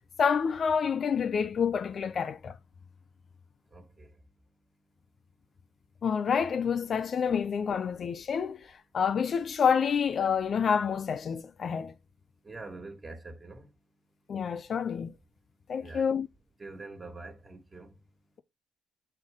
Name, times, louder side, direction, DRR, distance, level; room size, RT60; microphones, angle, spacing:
voice 1, 0.2-2.5 6.0-8.6 8.9-11.9 14.3-15.1 15.7-16.3, left 6 dB, 50° left, 0.6 m, -28 dB
voice 2, 3.7-4.1 12.4-13.7 15.8-16.0 16.6-17.9, right 3 dB, 25° right, 1.8 m, -44 dB
8.1 x 4.4 x 3.6 m
cardioid pair, 90°, 0 cm